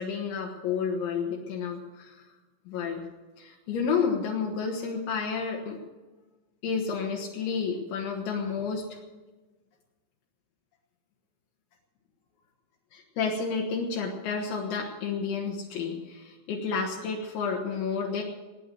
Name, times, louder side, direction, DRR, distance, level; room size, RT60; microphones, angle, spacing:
voice 1, 0.0-2.2 2.7-3.0 3.4-5.8 6.6-9.0 12.9-18.2, left 5 dB, 70° left, -2 dB, 3.7 m, -30 dB
19.5 x 9.9 x 6.9 m, 1.2 s
omnidirectional pair, 5.7 m